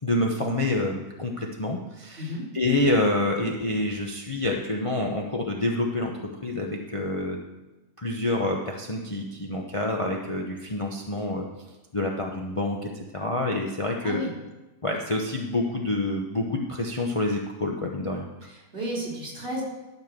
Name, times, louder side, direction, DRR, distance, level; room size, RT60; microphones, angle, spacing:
voice 1, 0.0-7.4 8.0-11.5 11.9-14.2 14.8-18.2, left 2 dB, 25° left, 0 dB, 0.8 m, -27 dB
voice 2, 2.2-2.5 14.0-14.3 18.4-19.6, equal, 45° right, -3 dB, 3.8 m, -33 dB
12.5 x 5.3 x 6.6 m, 1.1 s
omnidirectional pair, 1.4 m